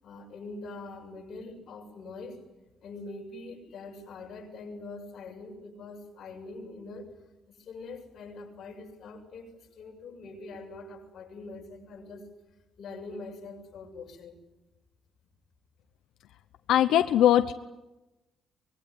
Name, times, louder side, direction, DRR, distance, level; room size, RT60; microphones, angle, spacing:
voice 1, 0.0-2.4 2.8-7.1 7.5-12.3 12.8-14.4, left 3 dB, 45° left, 0 dB, 7.3 m, -43 dB
voice 2, 16.7-17.5, left 11 dB, 85° left, 8 dB, 0.9 m, -21 dB
24.5 x 22.0 x 9.8 m, 1.0 s
cardioid pair, 175°, 0 cm